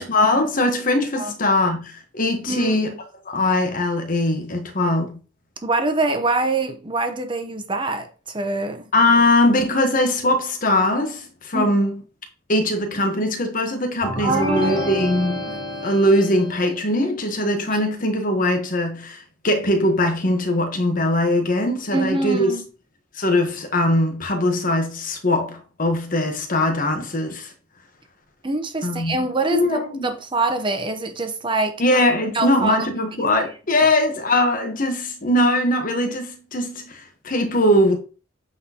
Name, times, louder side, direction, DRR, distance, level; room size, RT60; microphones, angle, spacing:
voice 1, 0.0-2.9 3.3-5.2 8.9-12.0 12.5-15.4 15.8-22.5 23.2-27.5 28.8-29.2 29.5-30.1 31.8-38.0, left 1 dB, 45° left, 1.2 m, -21 dB
voice 2, 5.6-8.9 11.5-11.7 14.2-15.5 21.9-22.6 28.4-31.8 32.3-32.8 33.8-33.9, right 2 dB, 25° right, 0.8 m, -24 dB
sound 1, 14.0-16.8, equal, 20° left, 2.4 m, -30 dB
8.4 x 4.0 x 2.9 m
head